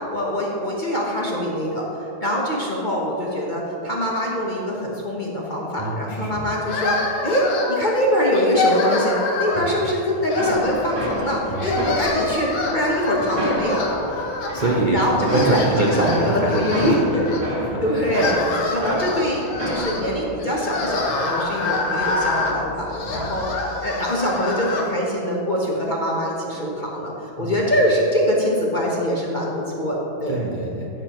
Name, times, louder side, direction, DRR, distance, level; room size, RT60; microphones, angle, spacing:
voice 1, 0.1-14.0 14.9-17.2 17.8-30.5, equal, 40° left, -3 dB, 0.7 m, -23 dB
voice 2, 5.8-6.5 9.4-9.6 11.5-11.7 14.2-17.0 17.6-18.0 23.1-23.2 27.4-27.5 30.3-30.9, right 2 dB, 85° right, -4 dB, 0.4 m, -24 dB
sound 1, 6.7-7.9 8.3-9.8 10.3-11.2 11.5-14.8 15.1-17.4 17.9-24.9, left 3 dB, 90° left, 2.0 m, -27 dB
sound 2, 10.4-23.6, equal, 40° right, 2.6 m, -31 dB
14.5 x 6.9 x 3.0 m, 2.9 s
omnidirectional pair, 2.2 m